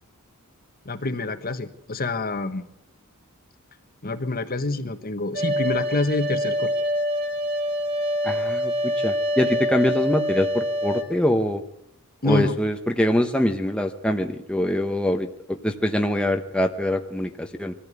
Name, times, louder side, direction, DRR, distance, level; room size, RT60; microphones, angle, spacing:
voice 1, 0.8-2.7 4.0-6.7 12.2-12.5, left 2 dB, 45° left, 8 dB, 1.4 m, -26 dB
sound 1, 5.3-11.0, equal, 45° right, 2.2 m, -25 dB
voice 2, 8.2-11.6 12.2-17.7, left 1 dB, 5° left, 4 dB, 1.0 m, -24 dB
22.5 x 14.5 x 8.3 m, 0.79 s
head